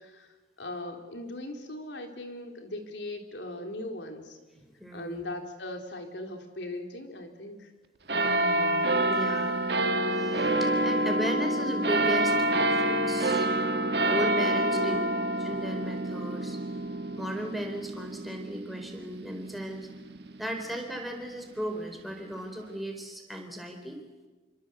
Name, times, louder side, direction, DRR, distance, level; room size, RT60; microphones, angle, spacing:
voice 1, 0.0-4.4 4.9-7.7 14.7-15.2, left 1 dB, 85° left, 4 dB, 3.8 m, -39 dB
voice 2, 4.8-5.2 8.2-9.6 10.1-13.5 14.1-15.0 15.4-16.6 17.2-19.9 20.4-24.0, equal, ahead, 2 dB, 4.2 m, -36 dB
sound 1, 8.1-21.0 21.6-21.7, right 1 dB, 65° right, 1.6 m, -27 dB
27.5 x 25.0 x 8.1 m, 1.3 s
head